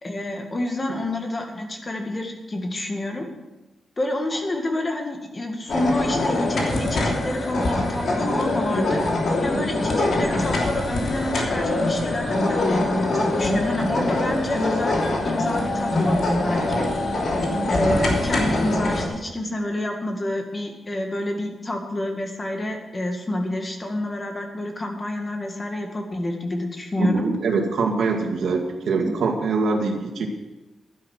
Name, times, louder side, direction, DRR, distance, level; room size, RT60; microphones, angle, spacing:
voice 1, 0.0-3.3 4.0-9.0 9.4-16.9 17.7-27.3 29.0-29.1, left 1 dB, 25° left, 3 dB, 1.9 m, -28 dB
sound 1, 5.7-19.1, left 2 dB, 65° left, 2.9 m, -23 dB
voice 2, 27.0-30.3, right 4 dB, 85° right, 3 dB, 2.1 m, -23 dB
12.0 x 10.0 x 6.5 m, 1.0 s
wide cardioid pair, 140°, 0 cm